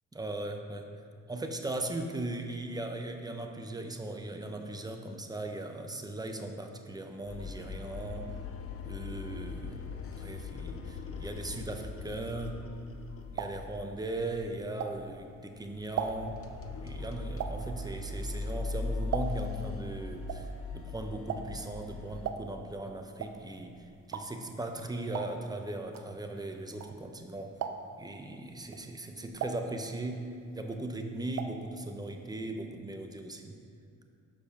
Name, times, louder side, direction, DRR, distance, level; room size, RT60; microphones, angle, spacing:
voice 1, 0.1-0.9 1.3-8.3 8.8-9.9 10.2-12.6 13.3-16.4 16.8-27.5 28.0-30.2 30.5-33.6, right 2 dB, 15° right, 4 dB, 0.7 m, -38 dB
sound 1, 7.3-14.0 14.3-14.6 15.0-15.1 15.5-22.3, left 3 dB, 50° left, 0.7 m, -40 dB
sound 2, 12.8-15.4 15.7-19.7 19.9-27.2 27.5-28.1 28.6-30.3 30.6-31.7 31.9-32.0 32.3-32.4, right 7 dB, 60° right, 0.6 m, -39 dB
6.7 x 5.2 x 5.7 m, 2.4 s
cardioid pair, 90°, 30 cm